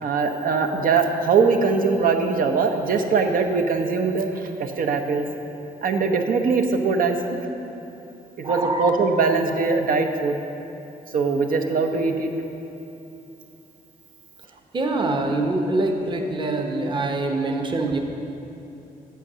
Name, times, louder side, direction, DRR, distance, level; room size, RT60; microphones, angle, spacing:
voice 1, 0.0-5.2 5.8-7.2 8.4-10.3 11.1-12.3, right 4 dB, 70° right, 5 dB, 0.8 m, -21 dB
voice 2, 8.4-8.9 14.7-18.0, right 2 dB, 30° right, 3 dB, 0.9 m, -24 dB
8.2 x 7.6 x 6.2 m, 2.9 s
cardioid pair, 110°, 15 cm